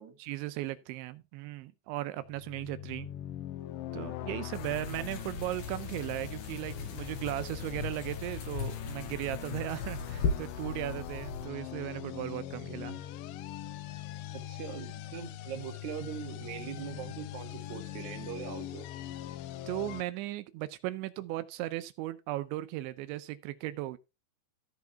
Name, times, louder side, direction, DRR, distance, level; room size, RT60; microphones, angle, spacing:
voice 1, 0.2-3.1 3.9-13.0 19.7-24.0, right 15 dB, 85° right, 3.0 m, -37 dB
sound 1, 2.2-20.0, left 13 dB, 90° left, 3.1 m, -42 dB
sound 2, 4.5-11.5, left 4 dB, 65° left, 5.1 m, -38 dB
voice 2, 14.3-18.9, right 8 dB, 55° right, 2.5 m, -41 dB
14.5 x 4.8 x 4.5 m
omnidirectional pair, 5.2 m